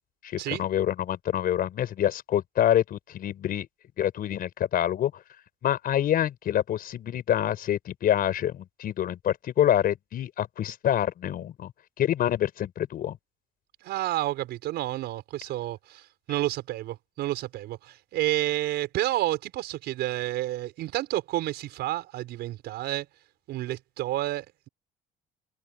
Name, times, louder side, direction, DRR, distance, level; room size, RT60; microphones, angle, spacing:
voice 1, 0.3-3.7 4.0-5.1 5.6-11.7 12.0-13.2, left 11 dB, 60° left, 5.5 m, -26 dB
voice 2, 13.8-23.1 23.5-24.7, right 15 dB, 80° right, 5.4 m, -30 dB
cardioid pair, 110°, 17 cm